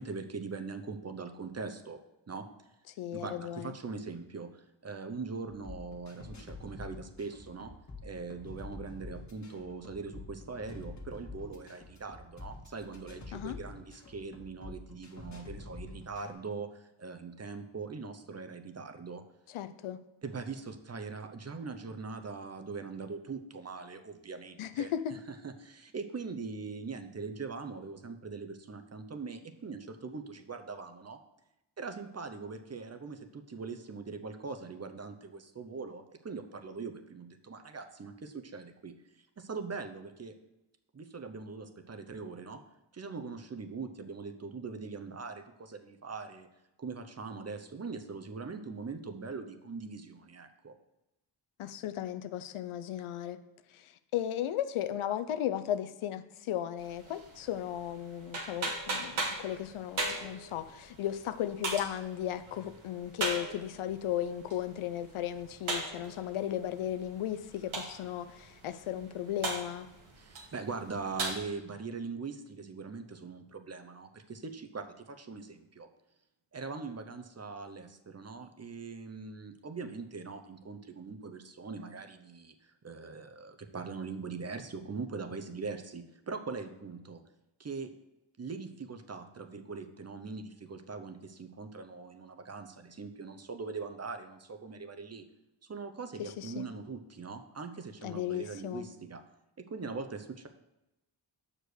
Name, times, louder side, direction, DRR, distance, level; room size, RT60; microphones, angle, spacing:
voice 1, 0.0-2.0 2.3-2.5 3.1-4.5 4.8-7.7 8.0-19.2 20.2-31.2 31.8-38.9 39.4-40.3 40.9-42.6 42.9-46.5 46.8-50.7 70.2-75.9 76.5-82.5 82.8-87.2 87.6-87.9 88.4-95.2 95.7-99.2 99.6-100.5, right 4 dB, 30° right, 7 dB, 0.8 m, -41 dB
voice 2, 3.0-3.7 13.3-13.6 19.5-20.0 24.6-25.2 51.6-53.4 53.7-69.9 96.2-96.7 98.0-98.9, left 11 dB, 85° left, 11 dB, 0.6 m, -35 dB
sound 1, 5.5-16.3, left 3 dB, 35° left, 1.7 m, -47 dB
sound 2, 56.8-71.4, right 2 dB, 80° right, 1.7 m, -40 dB
6.4 x 5.1 x 6.3 m, 0.93 s
cardioid pair, 75°, 48 cm